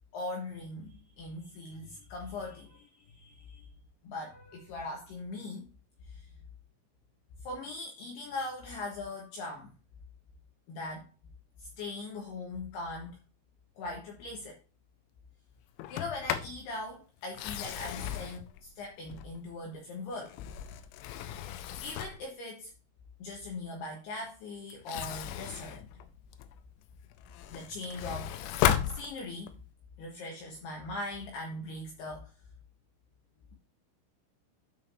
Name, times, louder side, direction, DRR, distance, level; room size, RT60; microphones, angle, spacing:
voice 1, 0.1-3.7 4.0-5.7 7.4-9.7 10.7-11.0 11.8-13.2 13.8-14.6 15.9-20.4 21.8-22.7 23.2-25.9 27.5-28.3 28.9-29.5 30.0-32.3, left 2 dB, 70° left, 2.8 m, -40 dB
Sliding door, 15.8-16.6 17.2-19.6 20.1-22.3 24.7-26.6 27.1-29.6, left 11 dB, 85° left, 2.9 m, -35 dB
13.0 x 4.9 x 2.7 m
omnidirectional pair, 5.9 m